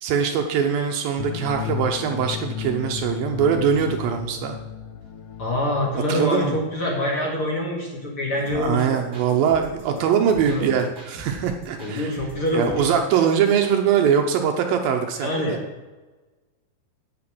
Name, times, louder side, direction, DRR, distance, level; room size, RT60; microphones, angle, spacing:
voice 1, 0.0-4.6 6.1-6.6 8.5-12.2 12.5-15.6, right 7 dB, 75° right, 4 dB, 2.4 m, -22 dB
sound 1, 1.2-6.3, left 10 dB, 70° left, 2.1 m, -33 dB
voice 2, 5.4-9.0 9.8-10.0 10.4-10.6 11.8-12.7 15.2-15.5, left 1 dB, 40° left, -2 dB, 2.5 m, -25 dB
sound 2, 8.5-13.8, right 3 dB, 20° right, 3.3 m, -42 dB
10.0 x 8.7 x 7.6 m, 1.2 s
omnidirectional pair, 4.6 m